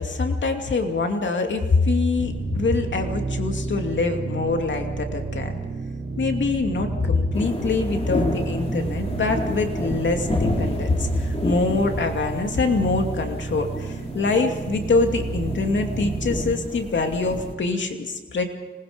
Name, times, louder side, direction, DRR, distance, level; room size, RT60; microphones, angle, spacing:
voice 1, 0.0-5.5 6.2-18.4, left 3 dB, 75° left, 4 dB, 2.6 m, -24 dB
sound 1, 2.2-16.4, right 3 dB, 90° right, 4.3 m, -31 dB
sound 2, 7.3-17.5, left 1 dB, 30° left, 4.1 m, -31 dB
26.0 x 20.5 x 5.3 m, 1.3 s
cardioid pair, 75°, 19 cm